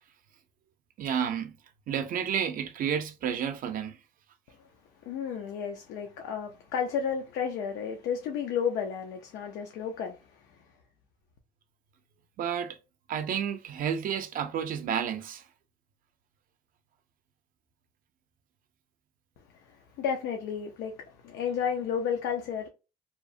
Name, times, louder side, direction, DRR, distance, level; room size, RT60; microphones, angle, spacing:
voice 1, 1.0-1.6 1.9-4.0 12.4-12.8 13.1-15.4, right 8 dB, 55° right, 0.4 m, -31 dB
voice 2, 5.1-10.6 19.5-22.7, left 7 dB, 85° left, 0.5 m, -32 dB
2.8 x 2.0 x 2.5 m
cardioid pair, 110°, 17 cm